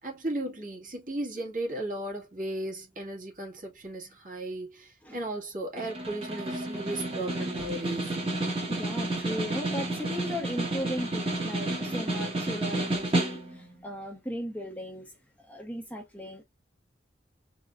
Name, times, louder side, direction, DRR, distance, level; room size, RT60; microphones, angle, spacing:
voice 1, 0.0-8.2, right 1 dB, 45° right, 2.0 m, -35 dB
Snare drum, 5.8-13.7, right 2 dB, 30° right, 1.6 m, -31 dB
voice 2, 7.2-7.7 8.5-16.4, equal, 10° left, 0.9 m, -37 dB
4.1 x 3.8 x 2.4 m
head